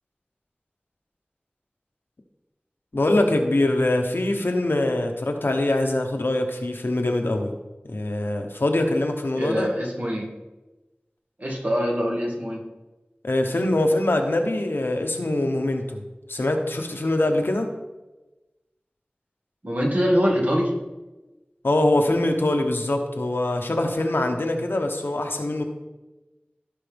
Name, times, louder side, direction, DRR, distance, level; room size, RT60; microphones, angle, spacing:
voice 1, 2.9-7.5 7.9-9.7 13.2-16.0 16.3-17.7 21.6-25.6, left 1 dB, 85° left, 4 dB, 1.1 m, -23 dB
voice 2, 9.4-10.3 11.4-12.6 19.6-20.8, equal, 45° right, -1 dB, 2.1 m, -24 dB
15.5 x 5.6 x 3.5 m, 1.1 s
wide cardioid pair, 45°, 4 cm